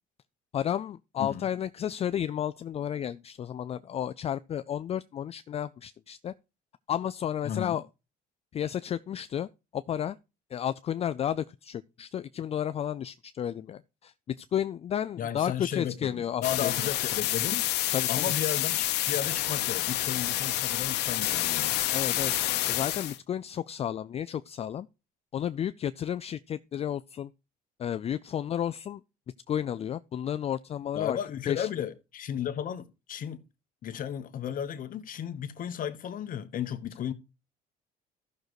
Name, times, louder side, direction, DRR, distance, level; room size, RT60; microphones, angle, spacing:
voice 1, 0.5-6.3 6.9-7.8 8.5-10.2 10.5-17.1 17.9-18.3 21.9-22.3 22.7-24.9 25.3-27.3 27.8-29.0 29.5-31.2 31.5-31.7, left 10 dB, 35° left, 0.4 m, -32 dB
voice 2, 7.4-7.8 15.2-17.7 18.1-21.8 30.9-33.4 33.8-37.1, left 9 dB, 55° left, 1.1 m, -34 dB
sound 1, 16.4-23.2, left 15 dB, 85° left, 0.9 m, -28 dB
14.5 x 6.5 x 3.1 m
cardioid pair, 110°, 17 cm